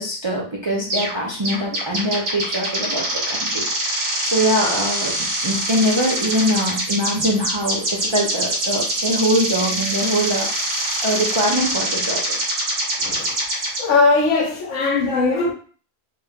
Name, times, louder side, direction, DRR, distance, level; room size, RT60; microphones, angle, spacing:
voice 1, 0.0-12.5, equal, 35° right, -3 dB, 0.4 m, -23 dB
sound 1, 0.9-1.2 1.4-13.8, right 1 dB, 85° right, 1.5 m, -24 dB
voice 2, 13.0-13.4 13.8-15.5, left 3 dB, 70° left, 2 dB, 1.1 m, -19 dB
3.4 x 2.8 x 3.5 m, 0.42 s
omnidirectional pair, 1.4 m